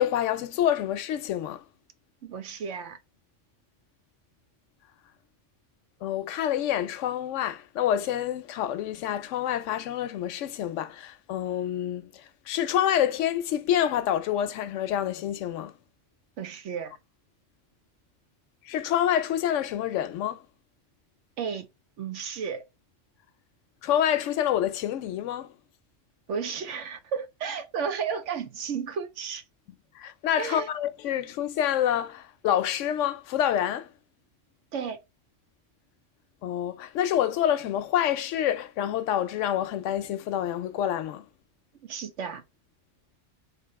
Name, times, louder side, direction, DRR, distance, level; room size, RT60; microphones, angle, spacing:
voice 1, 0.0-1.6 6.0-15.7 18.7-20.4 23.8-25.5 30.0-33.9 36.4-41.2, left 10 dB, 80° left, 0.9 m, -27 dB
voice 2, 2.2-3.0 16.4-16.9 21.4-21.7 22.0-22.6 26.3-29.4 30.4-30.7 34.7-35.0 41.8-42.4, right 6 dB, 75° right, 1.1 m, -33 dB
3.5 x 2.7 x 4.6 m
omnidirectional pair, 1.3 m